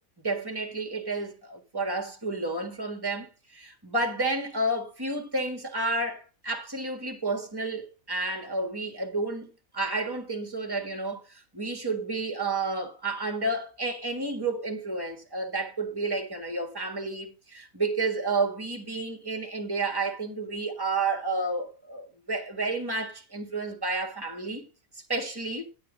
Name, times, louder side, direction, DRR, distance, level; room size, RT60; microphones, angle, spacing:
voice 1, 0.2-24.7 24.9-25.7, right 2 dB, 15° right, 1.7 m, -31 dB
10.0 x 9.2 x 3.9 m
omnidirectional pair, 1.4 m